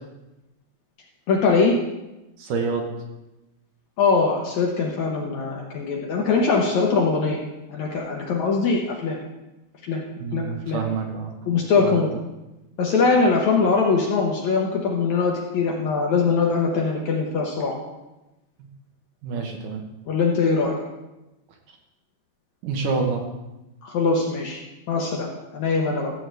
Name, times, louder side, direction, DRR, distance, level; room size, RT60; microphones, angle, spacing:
voice 1, 1.3-1.7 4.0-7.4 7.7-9.2 9.8-10.1 10.3-10.9 11.5-12.1 12.8-17.7 20.1-20.8 23.8-24.6 24.9-26.1, left 4 dB, 65° left, -1 dB, 1.9 m, -22 dB
voice 2, 2.4-2.9 10.2-11.3 11.8-12.0 19.2-19.8 22.6-23.3, right 4 dB, 70° right, 2 dB, 2.3 m, -27 dB
14.0 x 7.8 x 3.3 m, 0.99 s
omnidirectional pair, 4.3 m